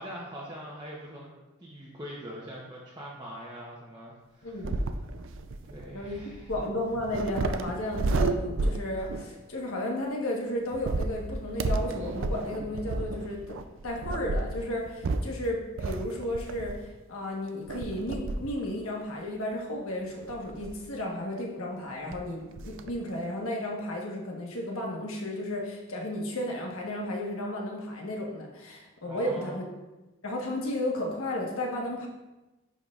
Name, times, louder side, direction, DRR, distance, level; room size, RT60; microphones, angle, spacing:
voice 1, 0.0-1.3 1.6-4.8 5.6-6.5 29.0-29.6, equal, 20° right, -6 dB, 0.8 m, -42 dB
voice 2, 4.4-4.8 5.9-13.6 13.8-16.7 17.1-29.6 30.2-32.1, left 1 dB, 80° left, -1 dB, 1.3 m, -33 dB
sound 1, 4.6-9.4 10.7-17.0 17.7-18.6 19.0-19.1 20.2-20.9 21.8-21.9 22.1-22.2 22.6-22.9, right 2 dB, 65° right, 0.4 m, -32 dB
10.5 x 4.7 x 2.4 m, 1.1 s
head